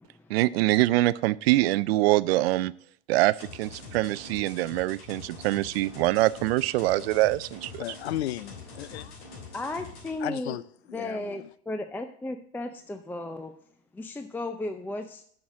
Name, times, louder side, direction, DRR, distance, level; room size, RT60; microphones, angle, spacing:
voice 1, 0.3-2.7 3.1-7.8, right 17 dB, 70° right, 0.5 m, -24 dB
sound 1, 3.4-10.2, left 4 dB, 70° left, 3.2 m, -44 dB
voice 2, 7.8-9.2 10.2-10.6 10.9-11.5, left 13 dB, 85° left, 0.5 m, -35 dB
voice 3, 9.5-10.6 10.9-13.5 13.9-15.2, left 2 dB, 5° left, 0.5 m, -35 dB
7.0 x 6.5 x 6.2 m
hypercardioid pair, 105°, 31 cm